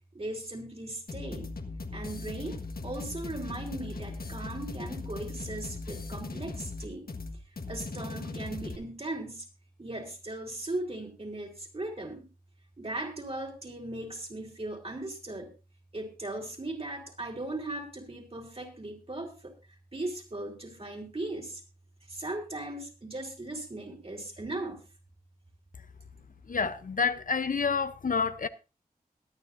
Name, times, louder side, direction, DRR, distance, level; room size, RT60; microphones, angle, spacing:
voice 1, 0.1-1.5 1.9-7.1 7.7-9.5 9.8-12.2 12.8-15.5 15.9-19.5 19.9-21.6 22.1-24.8, right 2 dB, 40° right, 3.6 m, -38 dB
sound 1, 1.1-8.8, left 3 dB, 80° left, 1.4 m, -39 dB
voice 2, 26.5-28.5, left 5 dB, 60° left, 0.6 m, -28 dB
22.0 x 9.5 x 2.6 m
wide cardioid pair, 80°, 15 cm